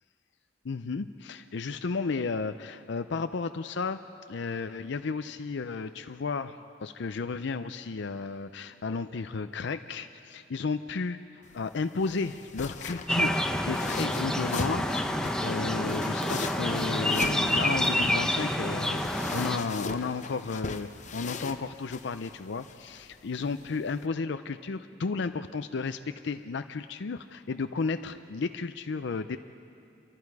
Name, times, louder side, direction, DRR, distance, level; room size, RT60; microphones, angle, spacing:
voice 1, 0.6-29.4, left 4 dB, 65° left, 9 dB, 0.5 m, -33 dB
sound 1, 11.4-24.1, left 4 dB, 40° left, 0.8 m, -40 dB
sound 2, 13.1-19.6, left 1 dB, 5° left, 0.9 m, -28 dB
28.0 x 23.5 x 4.8 m, 2.8 s
head